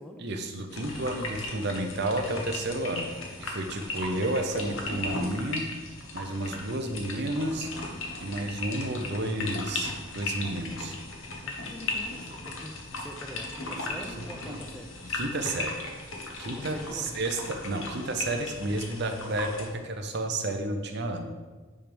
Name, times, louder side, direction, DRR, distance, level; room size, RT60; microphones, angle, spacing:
voice 1, 0.2-3.1 3.4-5.6 6.1-7.7 8.2-11.0 14.2-14.6 15.1-15.8 16.4-21.3, right 1 dB, 50° right, 5 dB, 0.7 m, -31 dB
sound 1, 0.7-19.7, left 2 dB, 70° left, 1.1 m, -37 dB
voice 2, 11.2-15.0 16.6-17.2, equal, 5° left, 2 dB, 0.4 m, -44 dB
8.7 x 3.5 x 5.1 m, 1.3 s
head